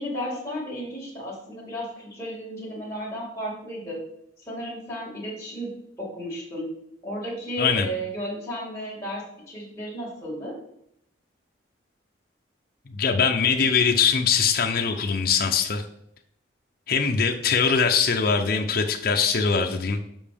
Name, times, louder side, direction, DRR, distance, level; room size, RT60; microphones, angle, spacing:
voice 1, 0.0-4.0 4.4-5.7 6.0-6.7 7.0-10.5, equal, 15° left, -6 dB, 2.6 m, -33 dB
voice 2, 12.9-15.8 16.9-20.0, left 6 dB, 50° left, 3 dB, 0.6 m, -22 dB
7.2 x 5.3 x 3.5 m, 0.74 s
head